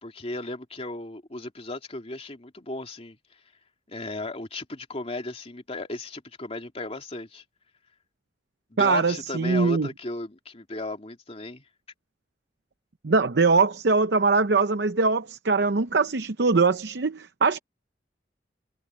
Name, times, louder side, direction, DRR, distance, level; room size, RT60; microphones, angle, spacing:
voice 1, 0.0-3.2 3.9-7.4 8.7-11.6, left 2 dB, 35° left, 2.7 m, -35 dB
voice 2, 8.8-9.9 13.0-17.6, right 4 dB, 70° right, 0.7 m, -22 dB
head